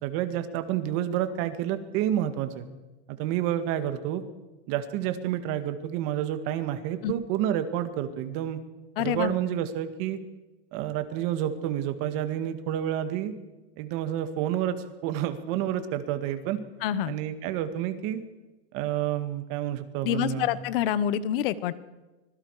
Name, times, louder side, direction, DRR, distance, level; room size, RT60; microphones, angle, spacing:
voice 1, 0.0-2.6 3.1-4.2 4.7-8.6 9.0-10.2 10.7-13.3 13.8-16.6 17.0-18.2 18.7-20.5, right 11 dB, 45° right, 9 dB, 2.0 m, -29 dB
voice 2, 9.0-9.3 16.8-17.1 20.0-21.7, left 11 dB, 55° left, 16 dB, 1.2 m, -27 dB
25.0 x 21.5 x 4.9 m, 1.1 s
supercardioid pair, 150°, 32 cm